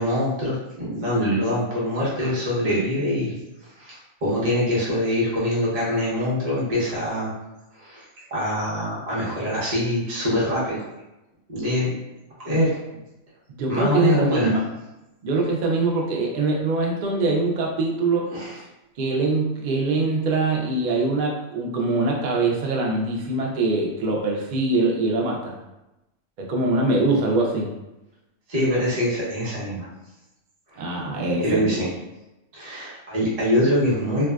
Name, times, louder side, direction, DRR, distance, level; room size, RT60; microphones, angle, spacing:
voice 1, 0.0-3.3 3.6-7.3 7.7-8.0 8.3-10.8 11.5-11.9 12.4-12.7 13.7-14.5 18.3-18.6 28.5-29.9 30.7-30.8 31.4-31.9 32.5-34.3, equal, 35° right, -8 dB, 0.8 m, -24 dB
voice 2, 13.5-14.6 15.2-18.3 19.0-25.6 26.4-27.7 30.8-31.7, right 3 dB, 80° right, -1 dB, 0.4 m, -23 dB
2.5 x 2.3 x 2.2 m, 0.97 s
omnidirectional pair, 1.4 m